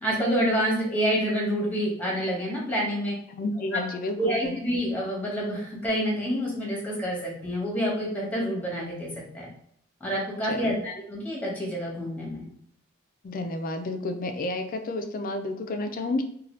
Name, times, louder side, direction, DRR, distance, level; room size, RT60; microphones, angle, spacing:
voice 1, 0.0-3.1 3.7-3.8 4.2-9.5 10.0-12.4, equal, 10° left, -4 dB, 1.0 m, -28 dB
voice 2, 3.3-4.6 10.4-10.7 13.2-16.2, left 2 dB, 45° left, 7 dB, 0.3 m, -31 dB
2.7 x 2.3 x 3.0 m, 0.68 s
head